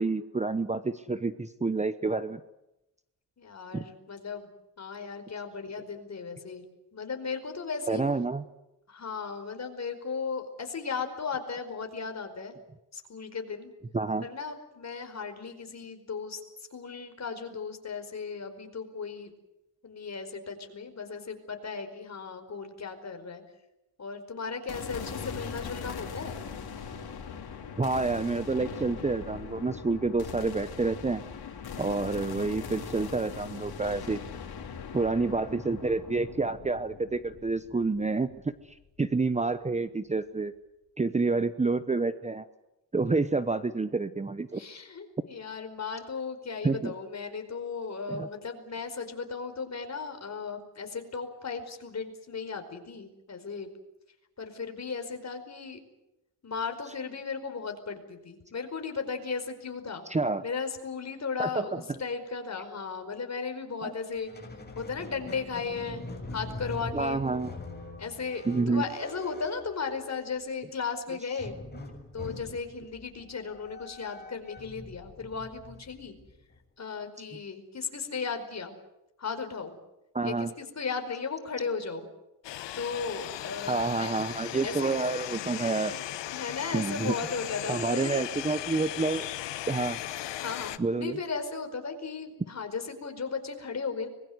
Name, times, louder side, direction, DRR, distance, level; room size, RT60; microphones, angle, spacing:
voice 1, 0.0-2.4 3.7-3.8 7.9-8.4 13.9-14.3 27.8-31.2 31.8-34.2 34.9-38.3 38.7-40.5 41.0-42.5 42.9-44.6 46.6-46.9 48.1-48.3 60.1-60.4 61.4-61.8 63.8-63.9 66.9-67.6 68.5-68.8 80.1-80.5 83.7-85.9 86.7-87.1 87.7-89.3 89.7-90.0 90.8-91.2, right 3 dB, 15° right, 13 dB, 1.0 m, -28 dB
voice 2, 3.4-4.5 4.8-6.6 6.9-8.0 8.9-12.6 12.9-13.7 14.2-16.4 16.7-19.3 19.8-23.4 24.0-26.4 44.5-53.7 54.4-55.8 56.4-60.0 60.4-64.3 64.7-66.0 66.3-67.2 68.0-71.5 72.1-76.1 76.8-78.7 79.2-79.7 80.2-82.1 82.8-84.1 84.6-85.0 86.3-88.2 90.4-94.1, left 5 dB, 40° left, 7 dB, 4.9 m, -36 dB
sound 1, 24.7-39.0, left 6 dB, 60° left, 4.4 m, -40 dB
Squeak, 64.1-70.4 71.4-76.6, left 2 dB, 25° left, 7.2 m, -43 dB
sound 2, 82.4-90.8, left 13 dB, 85° left, 1.3 m, -37 dB
25.0 x 21.5 x 8.0 m, 0.91 s
cardioid pair, 90°, 42 cm